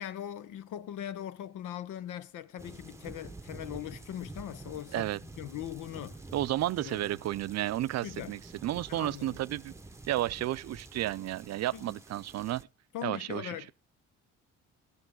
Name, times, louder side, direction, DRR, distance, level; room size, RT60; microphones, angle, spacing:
voice 1, 0.0-6.2 6.8-7.2 8.0-8.3 8.9-9.4 11.7-11.9 12.9-13.7, left 11 dB, 85° left, 0.8 m, -40 dB
sound 1, 2.6-12.6, right 2 dB, 10° right, 0.8 m, -49 dB
voice 2, 6.3-9.7 10.1-12.7 13.0-13.7, right 14 dB, 60° right, 0.5 m, -32 dB
14.0 x 9.9 x 3.7 m
cardioid pair, 90°, 30 cm